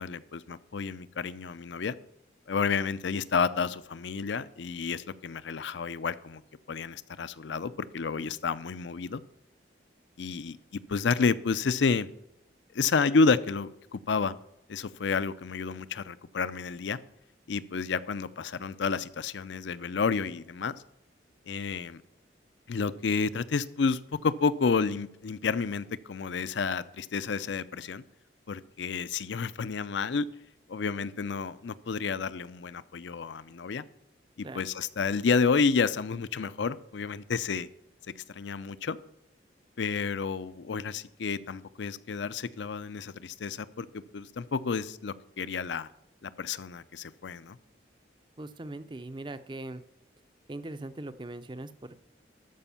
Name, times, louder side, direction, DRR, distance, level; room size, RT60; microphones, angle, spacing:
voice 1, 0.0-1.9 2.5-6.4 6.7-9.2 10.2-12.1 12.7-14.3 14.7-17.0 17.5-20.7 21.5-22.0 22.7-28.0 28.5-30.3 30.7-33.8 34.5-37.7 38.3-39.0 39.8-45.9 46.2-47.6, left 5 dB, 75° left, 15 dB, 0.5 m, -30 dB
voice 2, 48.4-49.8 50.5-52.1, right 2 dB, 25° right, 12 dB, 0.5 m, -40 dB
13.0 x 5.3 x 6.9 m, 0.84 s
head